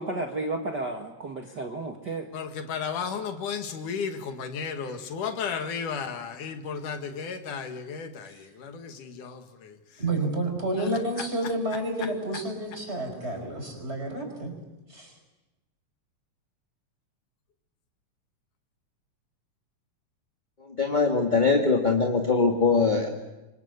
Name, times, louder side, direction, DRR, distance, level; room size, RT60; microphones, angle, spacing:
voice 1, 0.0-2.3, right 2 dB, 40° right, 2.0 m, -32 dB
voice 2, 2.3-9.8 10.8-10.9, left 6 dB, 80° left, 3.4 m, -34 dB
voice 3, 10.0-14.5 14.9-15.1, right 1 dB, 20° right, 5.8 m, -30 dB
voice 4, 20.8-23.1, left 4 dB, 20° left, 1.7 m, -22 dB
27.5 x 25.0 x 8.2 m
omnidirectional pair, 3.5 m